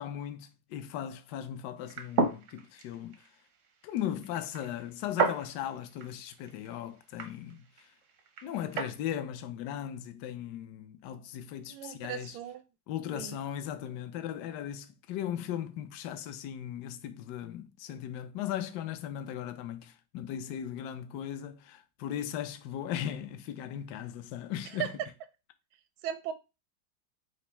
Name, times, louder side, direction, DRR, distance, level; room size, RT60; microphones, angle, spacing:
voice 1, 0.0-3.2 3.8-7.7 8.4-12.4 12.9-24.9, left 10 dB, 70° left, 1.0 m, -37 dB
sound 1, 1.8-9.0, right 4 dB, 70° right, 0.7 m, -35 dB
voice 2, 11.7-12.6 13.1-13.4 24.7-24.9 26.0-26.3, right 10 dB, 85° right, 1.3 m, -37 dB
5.1 x 2.0 x 4.3 m
omnidirectional pair, 2.1 m